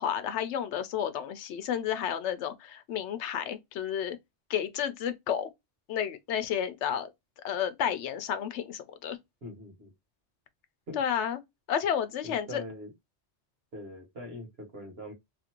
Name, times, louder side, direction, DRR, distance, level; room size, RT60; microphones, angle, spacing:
voice 1, 0.0-4.2 4.5-5.5 5.9-7.1 7.4-9.2 11.0-11.4 11.7-12.6, left 9 dB, 80° left, 0.9 m, -31 dB
voice 2, 9.4-9.9 10.9-11.0 12.2-12.9 13.7-15.1, left 1 dB, 60° right, 1.4 m, -42 dB
2.8 x 2.5 x 2.8 m
omnidirectional pair, 1.2 m